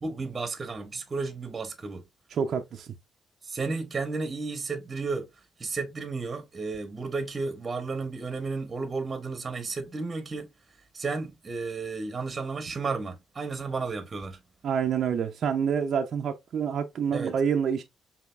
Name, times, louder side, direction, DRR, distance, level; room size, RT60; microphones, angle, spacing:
voice 1, 0.0-2.0 3.4-5.3 5.6-10.5 10.9-14.4 17.1-17.3, right 4 dB, 30° right, 0.9 m, -33 dB
voice 2, 2.3-2.9 14.6-17.8, right 7 dB, 60° right, 0.5 m, -27 dB
5.1 x 2.8 x 2.3 m
cardioid pair, 90°, 0 cm